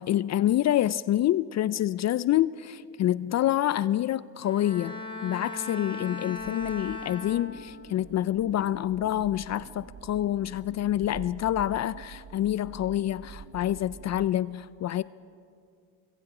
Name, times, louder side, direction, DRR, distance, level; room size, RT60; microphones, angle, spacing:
voice 1, 0.0-15.0, left 12 dB, 40° left, 0.4 m, -27 dB
Bowed string instrument, 4.4-8.0 8.4-8.8, left 3 dB, 10° left, 3.5 m, -38 dB
Waterdale Bridge Contact Mic, 6.4-14.3, right 7 dB, 40° right, 1.0 m, -47 dB
24.5 x 23.0 x 4.9 m
supercardioid pair, 95°, 42 cm